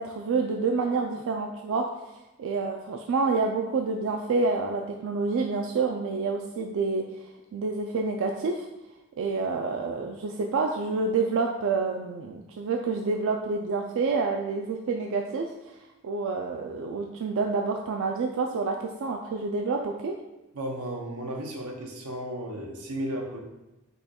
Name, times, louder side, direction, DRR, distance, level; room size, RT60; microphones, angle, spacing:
voice 1, 0.0-1.8 2.4-7.3 7.5-8.7 9.2-15.7 16.0-20.1, right 4 dB, 65° right, 2 dB, 0.4 m, -28 dB
voice 2, 20.5-23.4, right 1 dB, 90° right, 2 dB, 0.8 m, -34 dB
5.4 x 2.3 x 4.2 m, 0.99 s
head